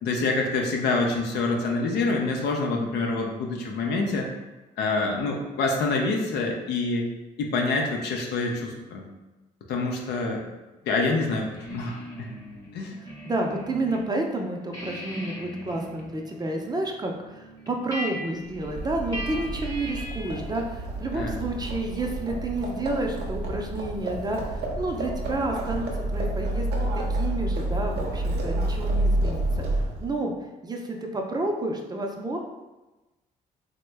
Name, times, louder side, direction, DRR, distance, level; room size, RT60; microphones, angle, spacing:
voice 1, 0.0-4.3 4.8-7.1 7.4-9.1 9.7-10.4 10.9-12.3 12.7-13.0 21.1-21.4, left 3 dB, 75° left, 1 dB, 0.6 m, -26 dB
sound 1, 11.5-14.0 14.3-20.5, equal, 20° left, 0.8 m, -40 dB
voice 2, 13.2-26.7 27.1-30.3 30.6-32.4, right 2 dB, 25° right, 2 dB, 0.5 m, -30 dB
Livestock farm animals working animals, 18.5-30.1, right 1 dB, 70° right, 0.6 m, -29 dB
2.9 x 2.1 x 3.3 m, 1.1 s
supercardioid pair, 70°, 17 cm